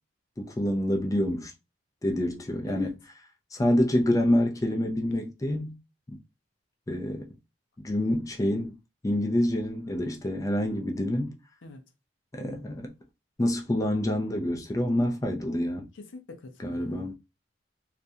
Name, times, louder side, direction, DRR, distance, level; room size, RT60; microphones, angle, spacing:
voice 1, 0.4-1.5 2.0-2.9 3.5-5.8 6.1-6.2 6.9-7.3 7.8-8.7 9.0-11.3 12.3-12.9 13.4-15.9 16.6-17.2, left 1 dB, 20° left, 0.4 m, -27 dB
voice 2, 15.9-17.2, left 2 dB, 85° left, 0.5 m, -46 dB
2.4 x 2.1 x 2.7 m
head